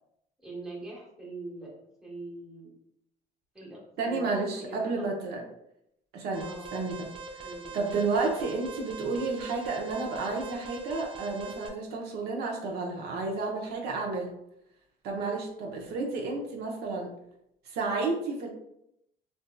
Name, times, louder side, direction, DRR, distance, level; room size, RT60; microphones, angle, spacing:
voice 1, 0.4-1.7 2.0-2.7 3.5-5.1 6.4-6.7 7.0-7.1 7.4-7.7 8.2-8.5, right 2 dB, 5° right, -4 dB, 1.0 m, -43 dB
voice 2, 4.0-5.4 6.1-7.1 7.3-7.5 7.7-14.3 15.0-17.1 17.7-18.5, right 3 dB, 70° right, 0 dB, 0.6 m, -31 dB
Alarm, 6.3-11.7, right 3 dB, 30° right, 0.5 m, -42 dB
3.4 x 2.6 x 2.2 m, 0.80 s
cardioid pair, 110°, 17 cm